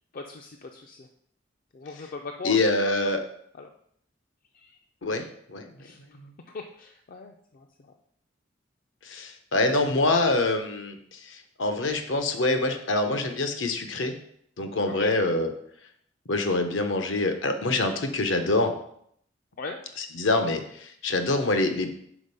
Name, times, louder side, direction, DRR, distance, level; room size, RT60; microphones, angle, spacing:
voice 1, 0.1-1.1 1.7-2.6 3.6-3.7 4.5-4.8 5.8-6.0 6.5-7.7 15.0-15.2 19.6-19.8, left 3 dB, 45° left, 4 dB, 0.4 m, -39 dB
voice 2, 2.4-3.2 5.0-5.7 6.1-6.3 9.0-14.1 14.6-15.5 16.3-18.7 20.0-21.9, left 2 dB, 80° left, 7 dB, 0.8 m, -25 dB
5.0 x 4.4 x 5.4 m, 0.69 s
head